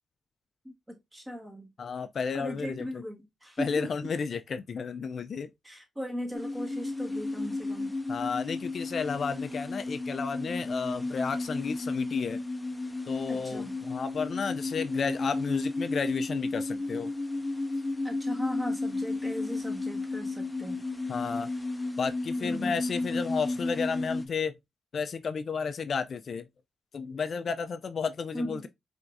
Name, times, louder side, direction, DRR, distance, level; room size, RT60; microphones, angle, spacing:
voice 1, 0.6-1.7 2.3-4.1 5.6-8.0 13.3-13.8 18.0-20.8 22.4-22.8 28.3-28.7, equal, 15° right, 1.7 m, -38 dB
voice 2, 1.8-2.8 3.6-5.5 8.1-12.4 13.1-17.1 21.1-21.5 22.0-24.5 24.9-26.5 26.9-28.7, left 5 dB, 60° left, 0.4 m, -32 dB
sound 1, 6.3-24.2, left 2 dB, 10° left, 0.8 m, -33 dB
4.5 x 3.5 x 2.5 m
cardioid pair, 85°, 0 cm